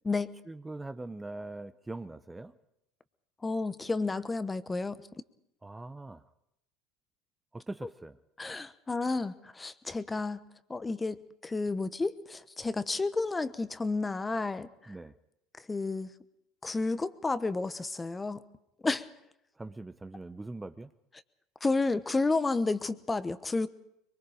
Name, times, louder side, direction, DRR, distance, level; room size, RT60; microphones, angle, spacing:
voice 1, 0.5-2.5 5.6-6.2 7.5-8.2 14.9-15.1 19.6-20.9, right 2 dB, 15° right, 11 dB, 0.8 m, -42 dB
voice 2, 3.4-5.0 8.4-10.4 10.7-14.7 15.7-16.1 16.6-18.4 18.8-19.1 21.6-23.7, left 3 dB, 20° left, 13 dB, 1.0 m, -31 dB
23.5 x 22.5 x 5.0 m, 0.82 s
hypercardioid pair, 75°, 0 cm